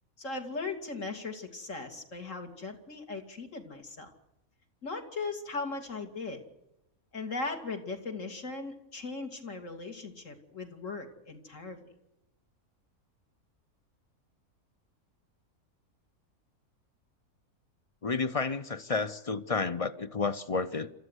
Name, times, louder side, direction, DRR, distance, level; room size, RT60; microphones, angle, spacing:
voice 1, 0.2-4.1 4.8-6.4 7.1-11.8, left 3 dB, 55° left, 4 dB, 2.9 m, -38 dB
voice 2, 18.0-20.9, left 4 dB, 35° left, 13 dB, 0.6 m, -31 dB
27.5 x 14.0 x 8.1 m, 0.91 s
omnidirectional pair, 1.6 m